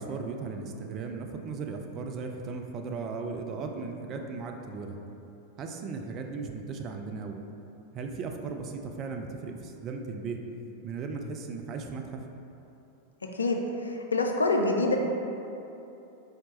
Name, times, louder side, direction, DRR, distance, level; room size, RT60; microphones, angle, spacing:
voice 1, 0.0-5.0 5.6-7.4 7.9-10.4 10.8-12.2, right 4 dB, 35° right, 4 dB, 0.3 m, -36 dB
voice 2, 13.4-15.0, left 2 dB, 75° left, 2 dB, 0.3 m, -26 dB
4.3 x 2.8 x 3.0 m, 2.9 s
figure-of-eight pair, 90°, 0 cm